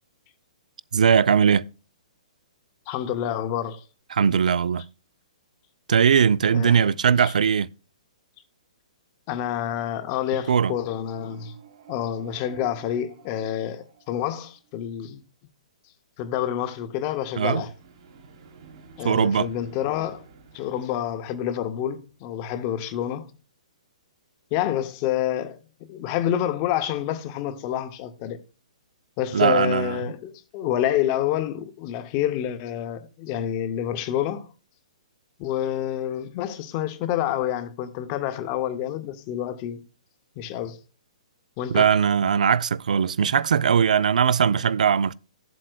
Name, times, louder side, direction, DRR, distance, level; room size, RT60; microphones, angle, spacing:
voice 1, 0.9-1.7 4.1-4.9 5.9-7.7 10.5-10.8 17.4-17.6 19.0-19.5 29.3-30.0 41.7-45.1, right 7 dB, 80° right, 0.3 m, -20 dB
voice 2, 2.9-3.8 6.5-6.9 7.2-7.3 9.3-11.6 11.9-15.2 16.2-17.7 19.0-20.2 20.5-23.3 24.5-25.6 25.9-28.4 29.2-34.5 35.4-39.8 40.4-40.8 41.6-41.9, left 11 dB, 20° left, 0.5 m, -28 dB
sound 1, 10.4-14.7 17.3-22.3, right 6 dB, 40° right, 1.2 m, -50 dB
14.0 x 7.6 x 2.2 m
hypercardioid pair, 175°, 4 cm